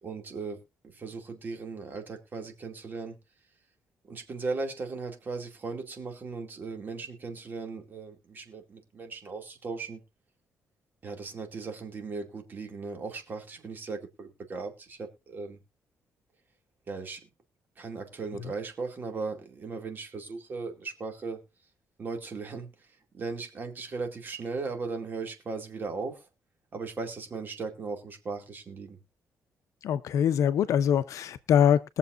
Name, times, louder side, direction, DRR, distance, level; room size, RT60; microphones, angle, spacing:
voice 1, 0.0-3.2 4.0-10.0 11.0-15.6 16.9-17.2 17.8-21.4 22.0-26.3 26.7-29.0, right 4 dB, 35° right, 2.4 m, -37 dB
voice 2, 29.8-32.0, left 9 dB, 65° left, 0.7 m, -23 dB
21.0 x 7.1 x 2.5 m
cardioid pair, 160°, 6 cm